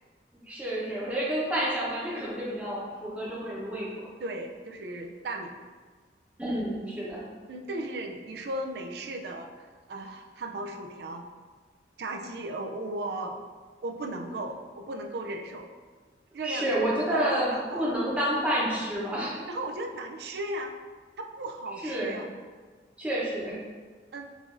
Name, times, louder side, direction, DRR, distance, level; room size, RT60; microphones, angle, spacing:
voice 1, 0.3-3.9 6.4-7.2 16.4-19.4 21.8-22.1 23.0-23.6, right 1 dB, 5° right, -7 dB, 0.8 m, -29 dB
voice 2, 4.2-5.7 7.5-9.5 9.9-11.2 12.0-13.4 13.8-15.7 16.3-16.7 17.1-18.0 19.5-20.7 21.2-22.3 24.1-24.2, right 2 dB, 65° right, 3 dB, 0.4 m, -36 dB
5.0 x 2.6 x 3.8 m, 1.5 s
head